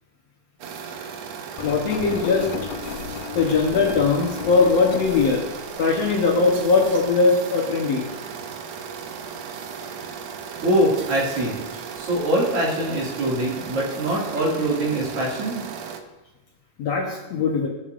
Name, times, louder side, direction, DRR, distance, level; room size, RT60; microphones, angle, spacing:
sound 1, 0.6-16.0, right 6 dB, 70° right, 1.7 m, -36 dB
Engine, 1.6-7.1, left 8 dB, 85° left, 1.5 m, -35 dB
voice 1, 1.6-2.5 3.4-5.4 5.8-8.1 16.8-17.7, left 4 dB, 60° left, -1 dB, 1.9 m, -20 dB
voice 2, 10.6-11.6 12.0-15.7, right 1 dB, 45° right, -4 dB, 3.0 m, -23 dB
19.0 x 8.5 x 2.5 m, 1.1 s
omnidirectional pair, 3.8 m